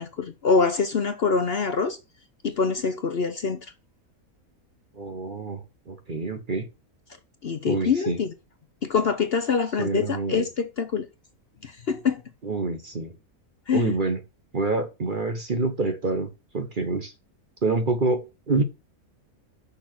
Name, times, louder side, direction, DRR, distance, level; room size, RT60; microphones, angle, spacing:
voice 1, 0.0-2.0 2.4-3.7 7.4-8.3 8.8-11.1 11.6-12.2 13.7-14.0, left 5 dB, 50° left, 0.9 m, -25 dB
voice 2, 4.9-6.7 7.7-8.2 9.8-10.5 12.4-13.1 13.7-14.2 14.5-16.3 16.5-17.1 17.6-18.6, right 3 dB, 40° right, 1.0 m, -27 dB
6.4 x 5.7 x 5.9 m
omnidirectional pair, 1.6 m